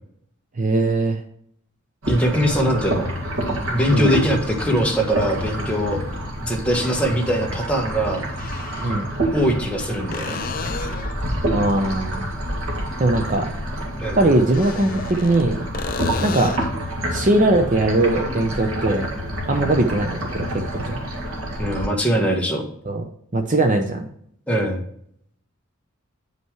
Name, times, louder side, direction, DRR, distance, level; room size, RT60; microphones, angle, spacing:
voice 1, 0.6-1.2 3.9-4.1 8.8-9.1 11.5-12.3 13.0-13.5 14.2-15.7 16.2-16.5 17.1-19.1 19.5-21.0 22.8-23.0 23.3-24.1, right 2 dB, 35° right, 6 dB, 0.7 m, -20 dB
sound 1, 2.0-21.9, equal, 80° right, 2.0 m, -28 dB
voice 2, 2.1-3.1 3.7-6.0 6.4-8.3 9.3-10.4 14.0-14.2 16.1-16.3 19.5-19.7 21.6-22.6 24.5-24.8, equal, 5° left, -1 dB, 1.4 m, -22 dB
sound 2, 4.8-4.9 6.9-7.0 8.3-9.1 10.1-11.2 14.4-15.4 15.7-16.8 20.4-20.5, left 6 dB, 40° left, 0.4 m, -33 dB
9.2 x 5.5 x 3.1 m, 0.66 s
head